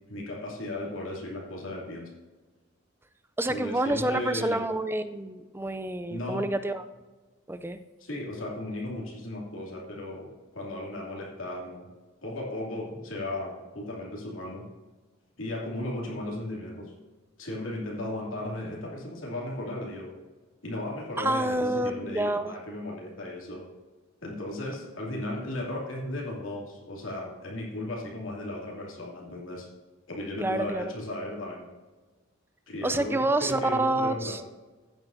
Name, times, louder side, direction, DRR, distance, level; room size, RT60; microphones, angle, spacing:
voice 1, 0.1-2.1 3.5-4.6 6.1-6.4 8.0-10.3 10.5-11.9 12.2-14.6 15.4-16.8 17.4-20.1 20.6-23.6 24.2-29.7 30.1-31.7 32.7-34.3, left 1 dB, 85° left, -3 dB, 2.7 m, -35 dB
voice 2, 3.4-6.8 7.5-7.8 21.2-22.5 30.4-30.8 32.8-34.4, right 1 dB, 10° right, 10 dB, 0.4 m, -28 dB
15.5 x 8.9 x 2.7 m, 1.3 s
head